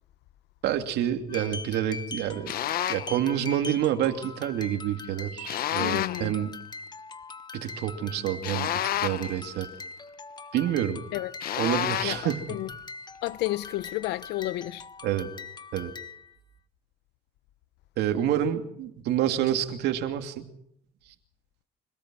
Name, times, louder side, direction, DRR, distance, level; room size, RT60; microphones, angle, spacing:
voice 1, 0.6-2.5 2.9-6.5 7.5-8.7 9.0-9.7 10.5-11.0 11.6-12.5 15.0-15.3 15.7-15.9 18.0-20.5, right 11 dB, 80° right, 2.7 m, -28 dB
sound 1, 1.3-16.3, left 4 dB, 25° left, 1.3 m, -42 dB
sound 2, 2.5-3.1 5.4-6.3 8.4-9.4 11.4-12.3, left 11 dB, 60° left, 1.0 m, -29 dB
voice 2, 5.8-6.4 11.1-11.3 12.0-12.7 13.2-14.9, left 17 dB, 85° left, 0.8 m, -31 dB
26.0 x 17.5 x 6.3 m
cardioid pair, 110°, 17 cm